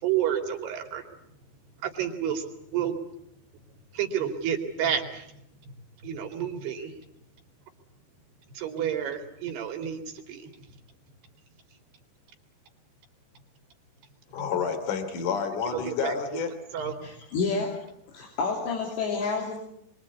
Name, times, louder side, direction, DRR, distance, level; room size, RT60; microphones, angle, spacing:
voice 1, 0.0-1.0 1.8-2.4 2.7-3.0 3.9-5.3 6.0-6.9 8.6-10.0 10.3-10.5 15.7-16.2 16.7-17.1, right 9 dB, 65° right, 5 dB, 4.4 m, -30 dB
voice 2, 14.3-16.5, left 6 dB, 50° left, 9 dB, 4.0 m, -29 dB
voice 3, 17.0-17.7 18.1-19.6, left 4 dB, 70° left, 0 dB, 5.5 m, -29 dB
26.0 x 24.5 x 8.4 m, 0.75 s
omnidirectional pair, 5.2 m